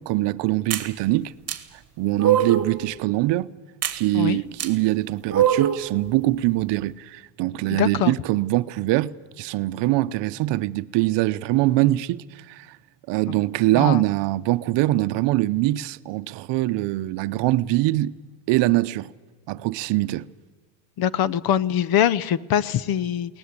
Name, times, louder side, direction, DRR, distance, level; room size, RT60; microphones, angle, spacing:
voice 1, 0.0-1.3 2.0-3.5 3.9-12.8 13.1-18.1 18.5-19.1 19.5-20.3, right 17 dB, 60° right, 0.8 m, -23 dB
sound 1, 0.7-0.9 1.5-1.6 2.2-2.7 3.8-4.0 4.6-4.7 5.3-5.9, right 10 dB, 30° right, 1.7 m, -22 dB
voice 2, 7.8-8.1 13.7-14.0 21.0-23.4, left 10 dB, 50° left, 0.7 m, -23 dB
22.0 x 18.5 x 8.3 m
cardioid pair, 135°, 48 cm